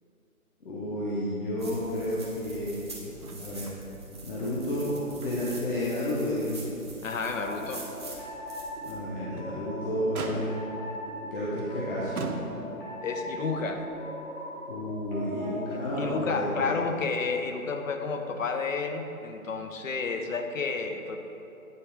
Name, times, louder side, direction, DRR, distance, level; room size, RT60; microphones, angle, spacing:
voice 1, 0.6-3.8 4.2-6.8 8.8-10.6 11.3-12.2 14.7-16.8, left 1 dB, 40° left, -8 dB, 1.1 m, -31 dB
sound 1, 1.6-8.9, right 3 dB, 20° right, 0.5 m, -45 dB
Motor vehicle (road), 3.2-3.8 4.1-4.2 4.8-5.7 6.1-6.3 6.8-6.9 9.1-9.6 10.1-10.8 11.6-11.7 12.2-13.0 14.0-14.1, right 4 dB, 85° right, 0.9 m, -39 dB
voice 2, 7.0-7.8 13.0-13.9 16.0-21.2, left 4 dB, 65° left, 5 dB, 0.8 m, -31 dB
sound 2, 7.0-16.3, left 1 dB, 15° left, 0.9 m, -39 dB
9.5 x 3.4 x 4.7 m, 2.8 s
figure-of-eight pair, 150°, 43 cm